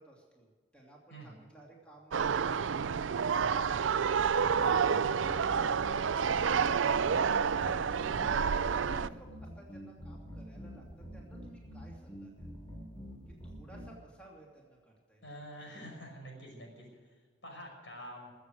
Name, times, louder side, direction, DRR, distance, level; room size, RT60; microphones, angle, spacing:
voice 1, 0.0-3.3 6.4-9.3 9.6-12.5 13.3-15.3, right 1 dB, 5° left, -3 dB, 2.9 m, -55 dB
sound 1, 2.1-9.1, right 6 dB, 85° right, 0.5 m, -29 dB
sound 2, 4.4-13.9, equal, 25° left, 3.3 m, -46 dB
voice 2, 15.2-16.9 17.4-18.3, equal, 75° left, 1 dB, 5.7 m, -47 dB
23.0 x 8.0 x 6.4 m, 1.5 s
head